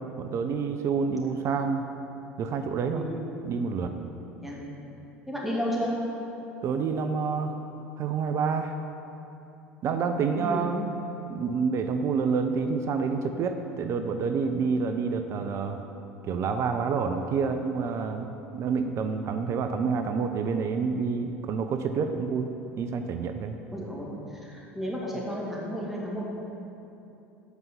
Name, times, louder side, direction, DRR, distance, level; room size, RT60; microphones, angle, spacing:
voice 1, 0.2-1.8 2.4-3.0 3.4-3.9 6.6-7.5 8.0-8.8 9.8-10.8 11.3-15.8 16.2-18.3 18.5-22.5 22.8-23.6, right 5 dB, 40° right, 7 dB, 0.5 m, -28 dB
voice 2, 5.3-6.0 10.3-10.7 23.7-26.3, equal, ahead, -5 dB, 2.3 m, -32 dB
8.1 x 5.4 x 7.0 m, 2.9 s
figure-of-eight pair, 70°, 7 cm